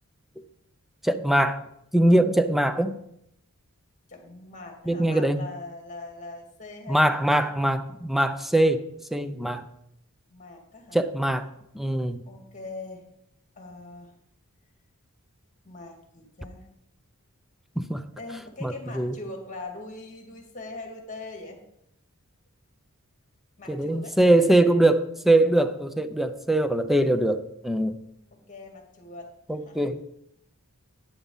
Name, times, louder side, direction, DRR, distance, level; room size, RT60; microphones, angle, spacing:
voice 1, 1.0-1.6 1.9-3.0 4.9-5.4 6.9-8.8 9.1-9.7 10.9-11.5 11.7-12.2 17.8-18.0 18.6-19.1 23.7-28.0 29.5-30.0, right 1 dB, ahead, 10 dB, 0.6 m, -22 dB
voice 2, 4.1-7.5 10.3-11.0 12.3-13.1 13.5-14.1 15.6-16.7 18.1-21.6 23.6-24.2 28.3-29.3 29.7-29.8, left 3 dB, 35° left, 2 dB, 2.1 m, -41 dB
11.0 x 9.4 x 4.0 m, 0.77 s
head